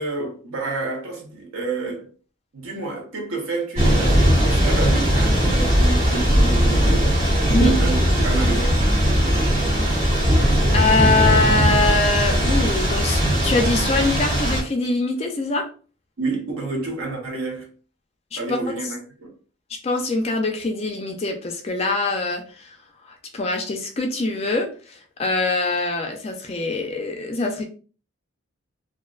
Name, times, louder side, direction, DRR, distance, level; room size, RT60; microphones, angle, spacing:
voice 1, 0.0-2.1 2.5-8.9 16.2-17.7 18.4-19.3, right 3 dB, 85° right, 0.8 m, -28 dB
Thunder / Rain, 3.8-14.6, equal, 35° right, 1.0 m, -19 dB
voice 2, 7.5-7.8 10.7-15.7 18.3-18.9 19.8-22.8 23.0-27.6, left 3 dB, 30° left, 0.3 m, -23 dB
2.5 x 2.1 x 2.3 m
head